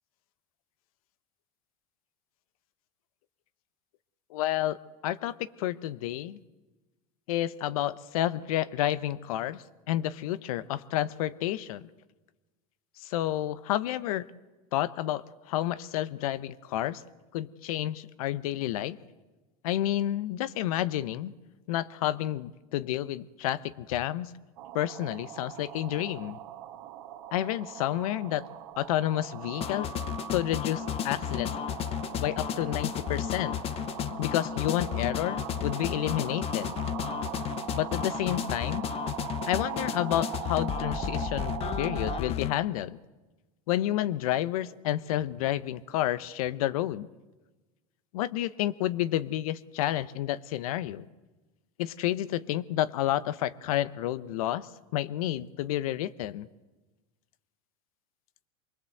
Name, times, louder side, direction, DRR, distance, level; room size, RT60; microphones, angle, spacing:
voice 1, 4.3-4.8 5.0-6.4 7.3-11.9 13.0-14.3 14.7-17.0 17.3-19.0 19.6-21.3 21.7-24.3 24.7-26.4 27.3-28.5 28.8-29.9 30.3-31.5 32.2-33.6 34.2-36.7 37.7-38.9 39.5-43.0 43.7-47.1 48.1-51.1 51.8-56.5, left 13 dB, 75° left, 16 dB, 1.0 m, -30 dB
sound 1, 24.6-42.2, right 12 dB, 75° right, 1.9 m, -40 dB
sound 2, 29.6-42.5, left 11 dB, 35° left, 0.8 m, -33 dB
24.5 x 21.0 x 7.9 m, 1.2 s
supercardioid pair, 130°, 18 cm